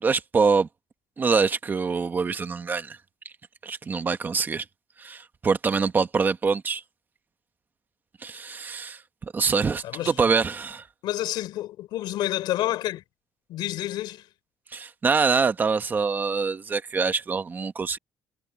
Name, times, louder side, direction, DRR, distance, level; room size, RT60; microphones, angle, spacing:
voice 1, 0.0-0.7 1.2-3.0 3.6-4.6 5.0-6.8 8.2-9.0 9.3-10.8 14.7-18.0, right 5 dB, 25° right, 1.2 m, -24 dB
voice 2, 11.0-13.0 13.5-14.3, left 14 dB, 80° left, 3.8 m, -29 dB
cardioid pair, 155°, 8 cm